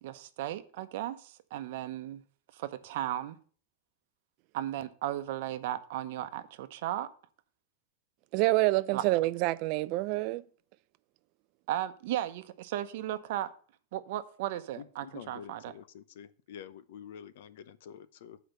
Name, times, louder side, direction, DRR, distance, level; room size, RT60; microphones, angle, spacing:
voice 1, 0.0-2.2 2.5-3.4 4.5-7.1 8.9-9.0 11.7-13.5 13.9-15.7, right 13 dB, 60° right, 0.8 m, -35 dB
voice 2, 8.3-10.4, right 20 dB, 45° right, 0.4 m, -27 dB
voice 3, 14.8-18.4, left 8 dB, 70° left, 0.7 m, -48 dB
8.0 x 5.0 x 6.6 m
supercardioid pair, 155°, 0 cm